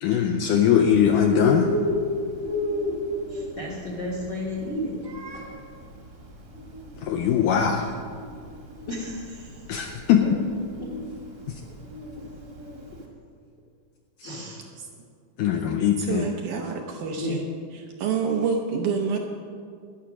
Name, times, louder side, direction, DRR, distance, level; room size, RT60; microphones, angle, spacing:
voice 1, 0.0-1.7 7.0-7.9 9.7-10.4 15.4-16.3, left 8 dB, 80° left, 4 dB, 1.9 m, -21 dB
Bird, 0.9-13.0, left 1 dB, 40° right, 1.3 m, -33 dB
voice 2, 3.3-5.0 8.9-9.6 10.2-10.3 10.8-11.0 12.2-12.3 12.9-13.0 14.2-14.7 17.1-17.4, left 1 dB, 50° left, -3 dB, 1.3 m, -33 dB
voice 3, 16.0-17.4 18.0-19.2, right 6 dB, 75° right, 2 dB, 1.9 m, -27 dB
11.5 x 10.0 x 6.0 m, 2.2 s
omnidirectional pair, 4.4 m